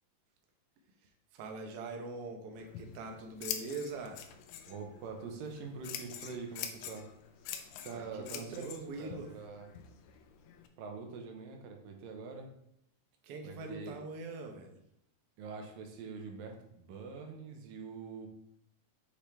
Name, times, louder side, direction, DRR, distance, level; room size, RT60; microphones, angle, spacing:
voice 1, 1.3-4.2 7.9-9.3 13.2-14.8, right 3 dB, 70° right, 3 dB, 1.4 m, -43 dB
Scissors, 2.5-10.7, left 9 dB, 75° left, 1.8 m, -46 dB
voice 2, 4.7-7.1 7.8-9.7 10.8-12.5 13.4-14.0 15.4-18.3, right 4 dB, 90° right, 2 dB, 2.7 m, -44 dB
7.2 x 5.2 x 3.4 m, 0.75 s
omnidirectional pair, 3.9 m